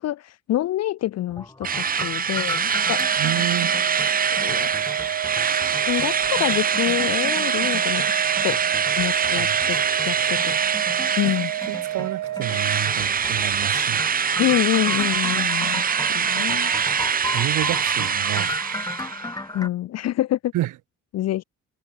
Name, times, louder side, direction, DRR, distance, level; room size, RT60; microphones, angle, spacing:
voice 1, 0.0-3.0 4.4-4.7 5.8-8.0 8.4-8.6 9.0-9.8 10.0-10.5 11.2-11.5 14.4-16.7 19.5-20.5 21.1-21.4, left 13 dB, 60° left, 0.5 m, -26 dB
sound 1, 1.3-19.7, left 2 dB, 10° left, 2.7 m, -36 dB
Drill, 1.6-12.0 12.4-19.3, right 7 dB, 30° right, 0.6 m, -24 dB
Organ, 2.7-13.4, right 14 dB, 70° right, 0.8 m, -30 dB
voice 2, 3.2-3.8 9.1-9.6 10.2-10.3 11.7-14.0 17.3-18.5 20.5-20.7, right 15 dB, 85° right, 1.6 m, -29 dB
cardioid pair, 90°, 30 cm